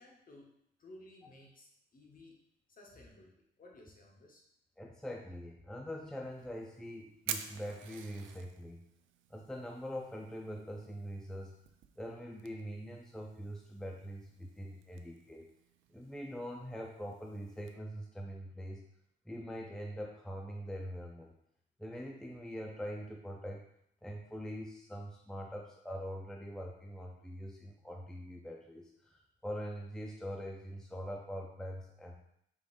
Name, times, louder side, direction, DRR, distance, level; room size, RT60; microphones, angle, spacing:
voice 1, 0.0-2.3 2.7-4.4, left 1 dB, 45° left, -1 dB, 1.2 m, -57 dB
voice 2, 4.8-8.8 9.3-11.5 12.0-15.5 15.9-18.8 19.3-21.3 21.8-23.7 24.0-32.2, equal, 5° left, 1 dB, 0.4 m, -43 dB
Fire, 6.2-17.7, right 9 dB, 75° right, 0.4 m, -50 dB
4.8 x 3.8 x 2.5 m, 0.74 s
cardioid pair, 90°, 20 cm